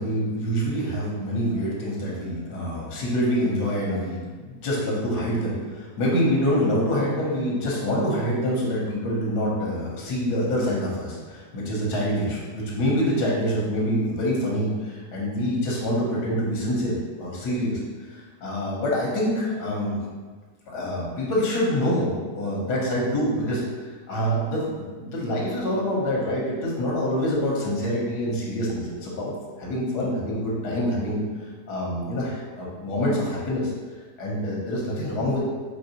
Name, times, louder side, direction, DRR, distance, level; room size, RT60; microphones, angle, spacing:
voice 1, 0.0-17.8 18.1-20.0 20.7-23.6 24.1-29.3 29.6-31.2 31.7-33.7 34.2-35.5, equal, 85° left, -3 dB, 1.5 m, -26 dB
4.5 x 3.2 x 2.8 m, 1.4 s
omnidirectional pair, 1.7 m